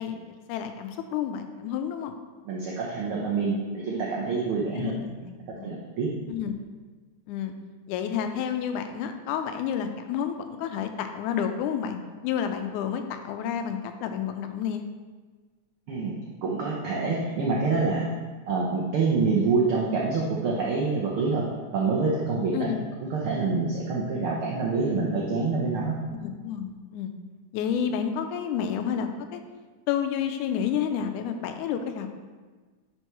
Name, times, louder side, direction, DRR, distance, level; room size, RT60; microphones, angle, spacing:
voice 1, 0.0-2.2 4.7-5.7 6.3-6.6 7.3-7.6 7.9-14.8 22.5-22.9 26.2-27.1 27.5-29.4 29.9-32.1, left 8 dB, 90° left, 7 dB, 2.1 m, -30 dB
voice 2, 2.4-4.9 5.6-6.1 15.9-18.1 18.5-21.4 21.7-22.7 23.0-26.0, right 4 dB, 85° right, -3 dB, 1.2 m, -26 dB
9.9 x 4.5 x 3.0 m, 1.4 s
omnidirectional pair, 3.4 m